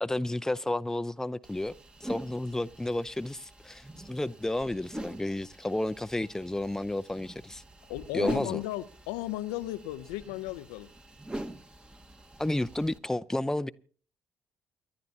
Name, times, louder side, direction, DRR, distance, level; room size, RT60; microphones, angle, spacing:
voice 1, 0.0-1.7 2.0-7.6 8.1-8.6 12.4-13.7, left 1 dB, 10° left, 0.7 m, -31 dB
sound 1, 1.4-13.0, right 1 dB, 15° right, 1.5 m, -44 dB
voice 2, 7.9-10.9, left 15 dB, 75° left, 0.6 m, -35 dB
29.0 x 11.5 x 2.8 m
hypercardioid pair, 45°, 6 cm